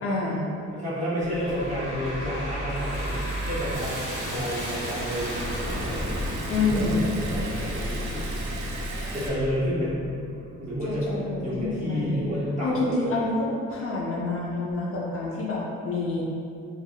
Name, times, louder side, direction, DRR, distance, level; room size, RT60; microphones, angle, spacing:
voice 1, 0.0-0.5 6.5-7.1 10.9-12.2 12.6-16.2, left 3 dB, 50° left, -4 dB, 0.5 m, -28 dB
voice 2, 0.7-6.0 6.6-8.3 9.1-10.0 10.6-13.1, equal, 25° right, -10 dB, 1.2 m, -30 dB
sound 1, 1.2-12.5, equal, 35° left, 1.3 m, -34 dB
Liquid, 1.2-9.3, right 3 dB, 65° right, 0.5 m, -40 dB
sound 2, 2.9-9.4, equal, 5° right, 1.2 m, -41 dB
3.4 x 2.3 x 2.2 m, 2.5 s
cardioid pair, 90°, 30 cm